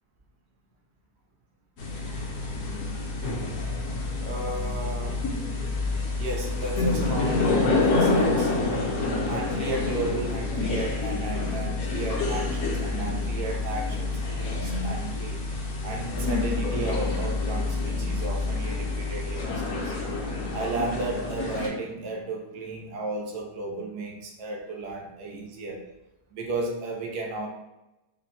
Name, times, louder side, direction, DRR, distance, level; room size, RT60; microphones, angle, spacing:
sound 1, 1.8-21.7, left 3 dB, 60° left, 1.0 m, -28 dB
voice 1, 4.2-5.2 6.2-8.8 9.3-15.4 15.8-19.9 20.5-25.8 26.3-27.5, right 2 dB, 85° right, 0 dB, 1.3 m, -34 dB
5.1 x 2.2 x 2.8 m, 0.94 s
omnidirectional pair, 1.7 m